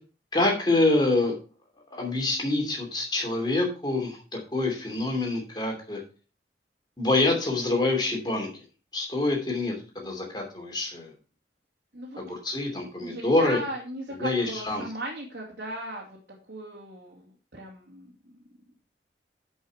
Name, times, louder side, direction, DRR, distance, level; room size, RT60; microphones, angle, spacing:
voice 1, 0.3-1.4 1.9-6.0 7.0-8.6 8.9-11.1 12.2-13.6 14.2-14.8, left 2 dB, 25° left, 1 dB, 2.8 m, -26 dB
voice 2, 13.0-16.2 16.5-18.1, right 1 dB, 70° right, -4 dB, 2.5 m, -37 dB
10.0 x 5.6 x 4.8 m, 0.37 s
head